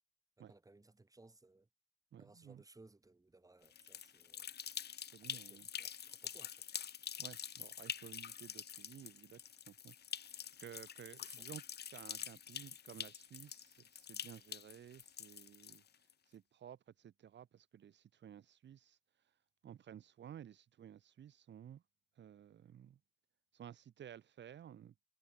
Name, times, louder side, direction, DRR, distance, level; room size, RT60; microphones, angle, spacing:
voice 1, 0.5-1.7 2.2-4.5 5.2-6.6 11.2-11.4, right 2 dB, 15° right, 4.5 m, -62 dB
voice 2, 2.1-2.6 5.1-5.7 7.2-9.4 9.7-11.6 11.9-15.8 16.3-19.0 19.6-21.8 22.2-23.0 23.5-24.9, right 9 dB, 65° right, 7.2 m, -55 dB
sound 1, 3.6-16.1, left 8 dB, 55° left, 2.6 m, -47 dB
cardioid pair, 90°, 20 cm